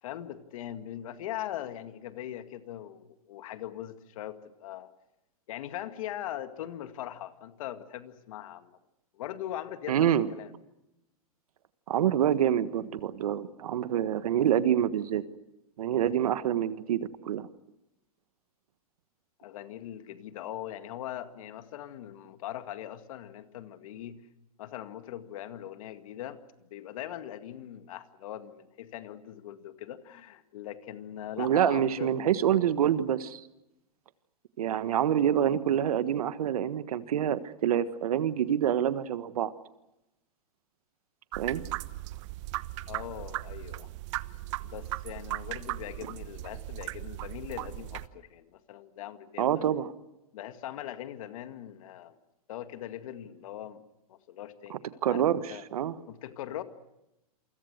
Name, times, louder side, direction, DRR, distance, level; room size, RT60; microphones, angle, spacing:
voice 1, 0.0-4.9 5.5-8.8 9.1-10.5 19.4-24.2 24.6-26.4 26.7-32.1 42.9-43.9 44.6-49.6 50.3-52.2 52.5-53.8 54.1-55.6 56.1-56.6, left 12 dB, 65° left, 9 dB, 2.1 m, -41 dB
voice 2, 9.9-10.3 11.9-15.2 15.8-17.5 31.4-33.4 34.6-39.5 41.4-41.6 49.4-49.9 54.7-56.0, right 10 dB, 75° right, 13 dB, 1.5 m, -27 dB
sound 1, 41.3-48.1, right 18 dB, 55° right, 1.0 m, -37 dB
28.5 x 24.5 x 6.7 m, 0.92 s
hypercardioid pair, 125°, 19 cm